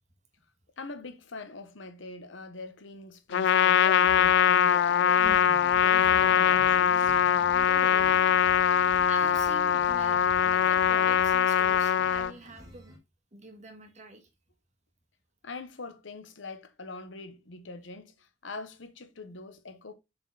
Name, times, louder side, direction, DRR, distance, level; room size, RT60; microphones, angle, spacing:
voice 1, 0.8-5.2 5.8-7.2 15.4-19.9, left 3 dB, 85° left, 1.0 m, -43 dB
Trumpet, 3.3-12.3, left 8 dB, 65° left, 0.3 m, -22 dB
sound 1, 4.1-11.2, left 1 dB, 35° left, 1.8 m, -48 dB
sound 2, 5.2-13.0, equal, 20° right, 2.4 m, -49 dB
voice 2, 7.7-8.4 9.1-12.9 13.3-14.3, right 2 dB, 40° right, 1.5 m, -45 dB
6.8 x 4.5 x 3.9 m
head